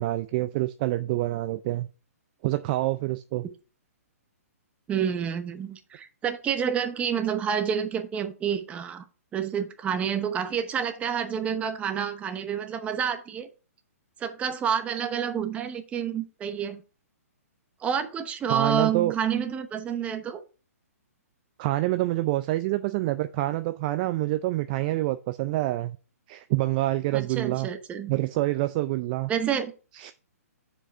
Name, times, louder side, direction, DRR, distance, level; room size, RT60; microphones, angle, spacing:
voice 1, 0.0-1.9 2.4-3.5 18.5-19.1 21.6-26.0 26.3-27.7 28.1-29.3 29.9-30.1, right 17 dB, 35° right, 0.4 m, -27 dB
voice 2, 4.9-9.0 9.3-13.5 14.2-16.8 17.8-20.4 27.1-28.1 29.3-29.7, right 8 dB, 15° right, 0.8 m, -29 dB
6.8 x 5.0 x 5.3 m
hypercardioid pair, 145°, 8 cm